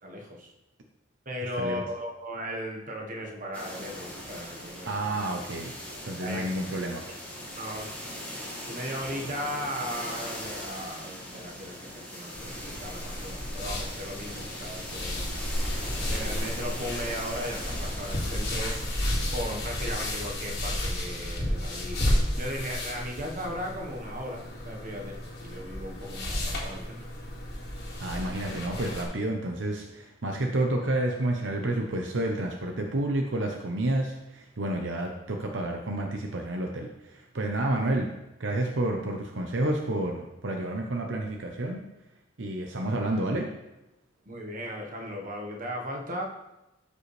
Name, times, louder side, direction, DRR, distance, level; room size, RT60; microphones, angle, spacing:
voice 1, 0.0-0.5 1.2-4.9 6.2-6.4 7.5-7.9 8.6-15.3 16.1-18.8 19.3-27.0 44.2-46.2, equal, 45° right, 0 dB, 1.3 m, -37 dB
sound 1, 3.5-19.3, equal, 10° left, 1.9 m, -40 dB
voice 2, 4.9-5.7 6.0-7.1 28.0-38.1 38.4-41.8 42.4-43.5, right 1 dB, 70° right, 2 dB, 0.8 m, -30 dB
sound 2, 12.3-29.0, left 1 dB, 60° left, 2.0 m, -32 dB
12.5 x 5.4 x 3.3 m, 0.96 s
head